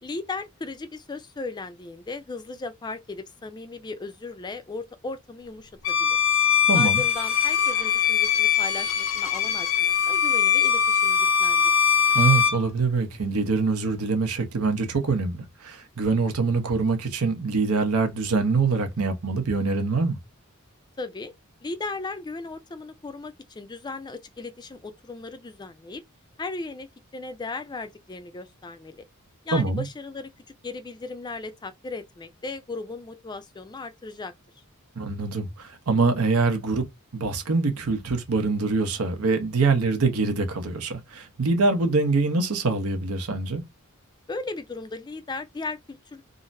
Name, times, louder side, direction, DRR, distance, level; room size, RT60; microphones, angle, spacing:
voice 1, 0.0-6.2 6.7-11.7 21.0-21.3 21.6-26.0 26.4-26.9 27.1-29.0 29.4-30.3 30.6-34.3 44.3-46.2, left 3 dB, 20° left, 0.3 m, -36 dB
Bowed string instrument, 5.8-12.6, left 8 dB, 65° left, 0.6 m, -21 dB
voice 2, 6.7-7.0 12.1-20.2 29.5-29.8 35.0-36.8 37.1-43.6, right 4 dB, 85° right, 0.8 m, -24 dB
3.7 x 2.0 x 2.6 m
head